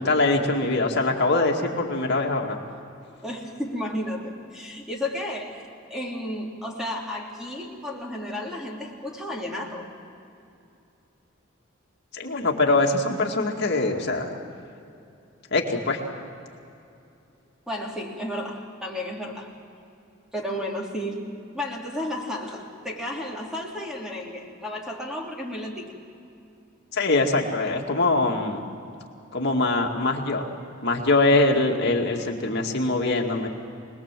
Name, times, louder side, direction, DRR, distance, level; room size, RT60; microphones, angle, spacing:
voice 1, 0.0-2.6 12.1-14.3 15.5-16.0 26.9-28.6 29.3-30.4 30.8-33.5, left 2 dB, 55° left, 1 dB, 2.3 m, -23 dB
voice 2, 3.2-9.9 17.7-19.5 20.3-21.3 21.5-25.9, left 1 dB, 5° right, -1 dB, 3.2 m, -33 dB
25.5 x 20.0 x 7.6 m, 2.6 s
head